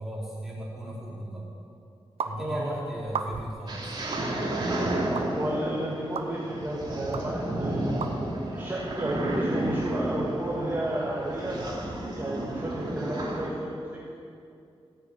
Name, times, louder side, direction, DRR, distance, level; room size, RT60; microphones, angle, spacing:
voice 1, 0.0-1.4 2.2-4.0, right 1 dB, 5° right, -6 dB, 4.7 m, -37 dB
sound 1, 2.2-2.3 3.1-3.6 4.1-4.3 5.1-5.3 6.1-6.3 7.1-7.2 8.0-8.1, right 5 dB, 80° right, 1.0 m, -33 dB
voice 2, 2.4-2.8 5.3-7.9 8.5-11.7 12.1-14.1, right 1 dB, 20° right, -6 dB, 2.5 m, -32 dB
sound 2, 3.7-13.5, right 1 dB, 45° right, 3.1 m, -31 dB
16.0 x 9.9 x 8.9 m, 2.5 s
wide cardioid pair, 140°, 10 cm